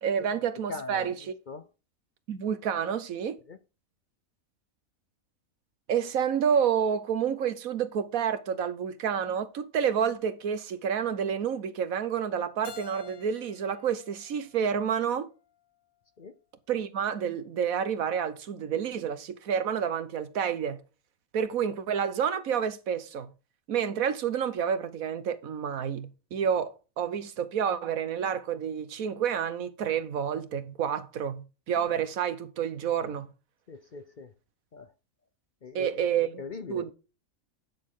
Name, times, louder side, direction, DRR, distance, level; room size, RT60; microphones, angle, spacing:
voice 1, 0.0-1.1 2.3-3.4 5.9-15.3 16.7-20.8 21.3-23.3 23.7-33.3 35.7-36.4 36.7-36.9, right 8 dB, 80° right, 1.4 m, -29 dB
voice 2, 0.7-1.7 3.5-3.6 16.2-16.3 33.7-34.3 34.7-34.9 35.6-36.9, left 4 dB, 45° left, 0.7 m, -42 dB
Keyboard (musical), 12.6-15.5, left 7 dB, 75° left, 1.6 m, -50 dB
10.5 x 6.5 x 3.7 m
omnidirectional pair, 1.4 m